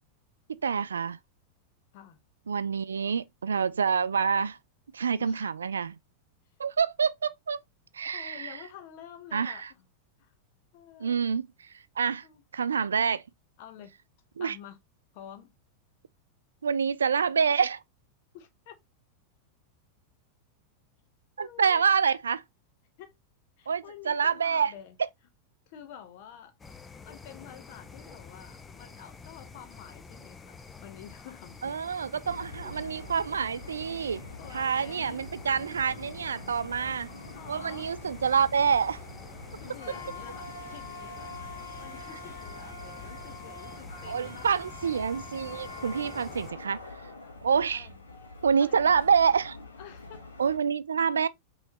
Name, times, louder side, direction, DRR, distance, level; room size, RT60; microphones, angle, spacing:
voice 1, 0.5-1.2 2.5-4.6 4.9-6.0 6.6-7.6 7.9-8.6 9.3-9.7 11.0-11.5 12.0-12.2 12.5-13.2 14.4-14.6 16.6-17.8 21.4-22.4 23.7-24.7 31.6-34.2 34.5-37.1 37.5-39.0 44.1-46.8 47.4-47.9 48.4-49.6 50.4-51.3, right 6 dB, 70° right, 0.4 m, -27 dB
voice 2, 8.1-9.9 10.2-10.3 10.7-11.2 12.2-12.4 13.6-13.9 14.4-14.8 15.1-15.5 18.3-18.8 21.4-21.8 23.0-23.1 23.6-25.0 25.7-26.5 27.0-31.7 34.4-35.2 37.3-37.9 39.6-41.3 41.8-44.5 47.7-48.0 48.6-49.1 49.8-50.2, left 9 dB, 50° left, 1.1 m, -49 dB
sound 1, 26.6-46.5, left 5 dB, 15° left, 0.5 m, -48 dB
sound 2, 32.3-50.6, left 2 dB, 70° left, 1.3 m, -44 dB
5.5 x 3.2 x 3.0 m
figure-of-eight pair, 90°, 0 cm